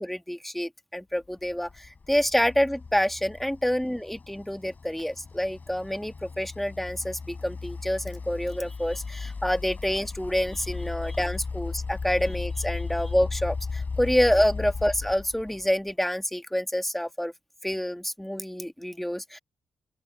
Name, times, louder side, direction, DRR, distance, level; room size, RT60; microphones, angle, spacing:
voice 1, 0.0-17.3 17.6-19.4, equal, 5° left, 1.5 m, -27 dB
sound 1, 1.5-15.9, left 4 dB, 35° left, 6.7 m, -36 dB
open air
cardioid pair, 110°, 5 cm